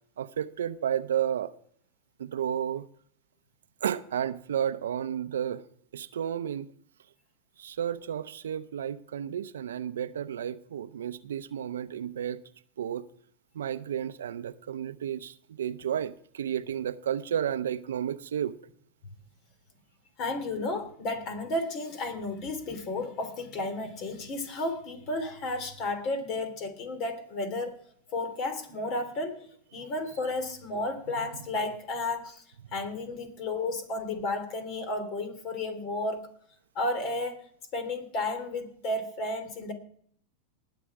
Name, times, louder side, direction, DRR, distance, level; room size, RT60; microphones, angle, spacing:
voice 1, 0.2-1.5 2.2-2.8 3.8-5.6 5.9-6.7 7.6-12.4 12.8-13.0 13.5-18.5, right 9 dB, 80° right, 0.7 m, -32 dB
voice 2, 20.2-27.7 28.1-29.4 29.7-32.4 32.7-36.3 36.7-37.4 37.7-39.7, left 2 dB, 45° left, 3.2 m, -32 dB
19.5 x 6.9 x 4.9 m
hypercardioid pair, 105°, 0 cm